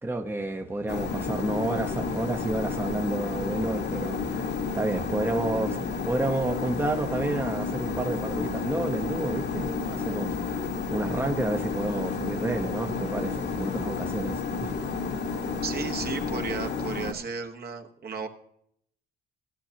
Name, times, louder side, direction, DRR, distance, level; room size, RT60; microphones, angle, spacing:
voice 1, 0.0-4.5 4.7-14.7, right 2 dB, 10° right, 0.9 m, -30 dB
sound 1, 0.9-17.1, left 4 dB, 55° left, 1.5 m, -31 dB
voice 2, 15.6-18.3, right 5 dB, 50° right, 1.3 m, -34 dB
15.5 x 9.8 x 2.8 m
cardioid pair, 90°, 20 cm